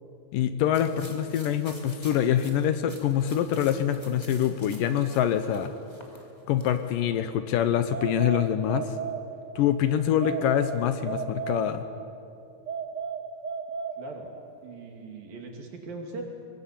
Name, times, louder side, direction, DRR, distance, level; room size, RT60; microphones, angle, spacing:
voice 1, 0.3-5.7 6.5-8.9 9.6-11.9, left 10 dB, 75° left, 10 dB, 2.2 m, -25 dB
sound 1, 0.7-6.9, left 1 dB, 10° left, 2.1 m, -48 dB
sound 2, 7.9-9.7 10.2-12.1 12.7-14.5, right 6 dB, 50° right, 1.3 m, -35 dB
voice 2, 14.0-14.3 14.6-16.2, right 3 dB, 70° right, 2 dB, 4.4 m, -40 dB
24.0 x 19.0 x 8.5 m, 2.6 s
omnidirectional pair, 4.3 m